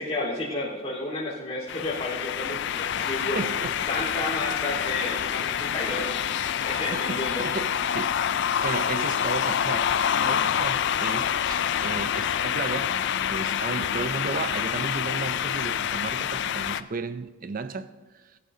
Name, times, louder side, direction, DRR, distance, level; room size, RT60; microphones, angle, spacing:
voice 1, 0.0-3.4 3.9-6.1 6.6-7.4, left 2 dB, 25° left, 4.0 m, -31 dB
sound 1, 1.7-16.8, left 8 dB, 55° left, 0.4 m, -27 dB
voice 2, 3.0-3.8 6.9-8.2 8.6-13.0 13.3-18.4, right 4 dB, 40° right, 0.5 m, -34 dB
21.0 x 11.0 x 2.8 m
head